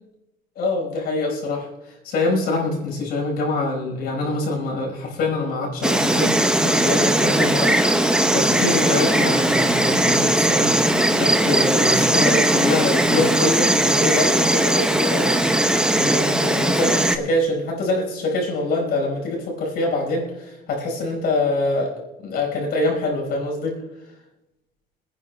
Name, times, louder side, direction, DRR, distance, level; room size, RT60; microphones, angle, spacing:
voice 1, 0.6-1.7 2.0-10.7 11.1-21.9 22.2-23.8, left 2 dB, 70° left, -1 dB, 5.2 m, -25 dB
Insect, 5.8-17.2, right 1 dB, 5° right, 0.9 m, -19 dB
27.0 x 9.9 x 2.3 m, 1.0 s
cardioid pair, 110°, 17 cm